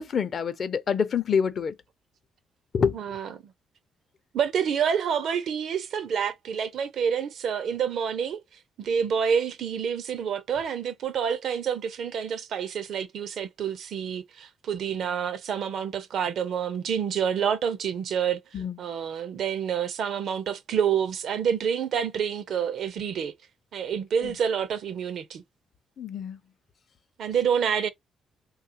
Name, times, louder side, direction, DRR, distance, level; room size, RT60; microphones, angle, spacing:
voice 1, 0.0-1.7 2.7-3.0 18.5-18.8 24.2-24.3 26.0-26.4, left 6 dB, 45° left, 0.5 m, -26 dB
voice 2, 2.9-3.5 4.3-8.4 8.8-23.3 23.7-25.4 27.2-27.9, right 7 dB, 65° right, 0.6 m, -28 dB
3.3 x 2.3 x 2.8 m
cardioid pair, 115°, 0 cm